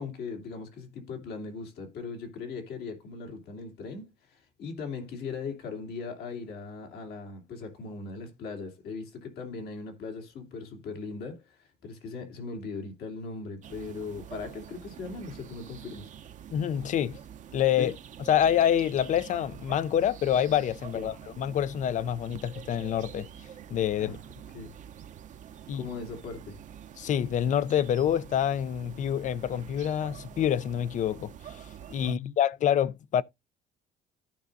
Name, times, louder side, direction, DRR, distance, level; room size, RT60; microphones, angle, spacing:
voice 1, 0.0-16.1 17.8-17.9 20.9-21.1 24.0-24.7 25.7-26.6 32.0-32.3, left 4 dB, 70° left, 2.7 m, -39 dB
sound 1, 13.6-32.1, right 9 dB, 45° right, 0.7 m, -46 dB
voice 2, 16.5-17.2 17.5-17.9 18.3-23.3 23.7-24.2 25.7-25.9 27.0-31.3 31.9-33.2, left 10 dB, 50° left, 0.5 m, -26 dB
14.0 x 5.2 x 2.6 m
cardioid pair, 110°, 17 cm